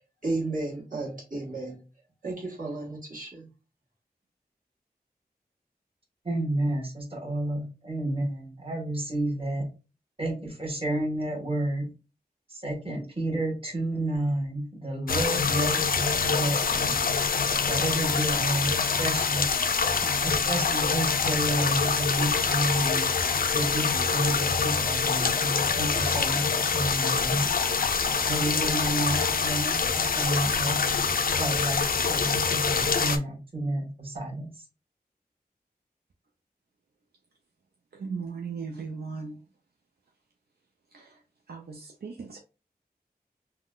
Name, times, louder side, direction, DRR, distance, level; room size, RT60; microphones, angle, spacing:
voice 1, 0.2-1.8 2.2-3.5, right 2 dB, 55° right, 1.5 m, -33 dB
voice 2, 6.2-9.7 10.2-11.9 12.5-17.0 17.6-19.4 20.2-23.1 23.5-27.5 28.2-30.9 31.4-34.5, right 1 dB, 35° right, 1.3 m, -30 dB
sound 1, 15.1-33.2, left 5 dB, 65° left, 0.4 m, -25 dB
voice 3, 37.9-39.4 40.9-41.2 41.5-42.4, right 5 dB, 80° right, 0.4 m, -37 dB
3.6 x 2.2 x 2.3 m
wide cardioid pair, 50°, 16 cm